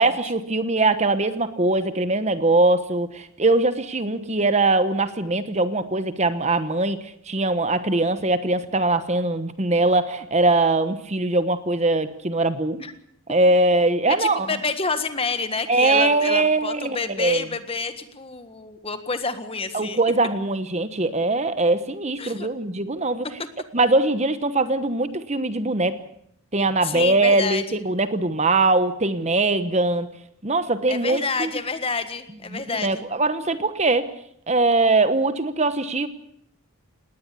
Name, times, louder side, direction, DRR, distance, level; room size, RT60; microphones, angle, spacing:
voice 1, 0.0-12.8 13.3-14.5 15.7-17.4 19.7-23.3 23.7-26.0 26.5-30.1 30.4-31.5 32.5-34.1 34.5-36.1, right 2 dB, 30° right, 12 dB, 1.1 m, -21 dB
voice 2, 14.1-20.0 22.2-22.5 26.8-27.8 30.9-33.0, left 4 dB, 25° left, 10 dB, 1.6 m, -28 dB
19.5 x 18.5 x 8.4 m, 0.69 s
head